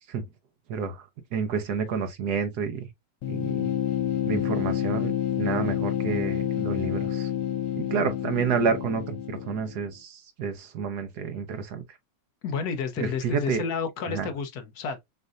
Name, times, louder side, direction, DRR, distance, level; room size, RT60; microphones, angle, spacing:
voice 1, 0.7-2.9 3.3-3.7 4.3-7.3 7.8-11.8 13.0-13.6 14.1-14.3, right 6 dB, 65° right, 1.1 m, -29 dB
sound 1, 3.2-9.9, left 11 dB, 85° left, 1.5 m, -28 dB
voice 2, 12.4-15.0, left 5 dB, 65° left, 1.1 m, -31 dB
6.3 x 2.6 x 2.4 m
omnidirectional pair, 2.2 m